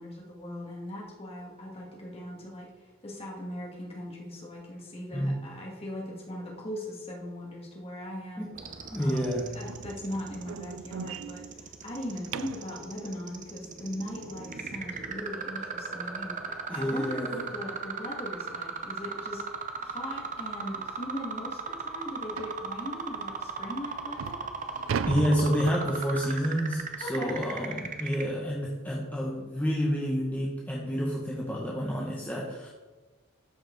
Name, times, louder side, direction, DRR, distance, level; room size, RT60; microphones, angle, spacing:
voice 1, 0.0-8.5 9.0-19.4 19.8-24.4 27.0-27.3, left 1 dB, 30° left, -2 dB, 2.0 m, -39 dB
voice 2, 5.1-5.4 8.4-8.5 8.9-9.6 16.4-17.5 25.1-32.7, equal, 10° left, -4 dB, 0.8 m, -29 dB
sound 1, 8.6-28.2, right 5 dB, 40° right, 0.7 m, -37 dB
sound 2, 9.7-12.8 15.6-15.7 16.1-16.3 16.7-16.8 17.3-17.4 18.5-18.6 19.0-19.2 19.8-19.9 20.3-20.4 20.9-21.0 22.4-22.7 23.4-23.5 24.0-26.3, right 6 dB, 70° right, 0.4 m, -37 dB
12.5 x 4.7 x 3.9 m, 1.3 s
head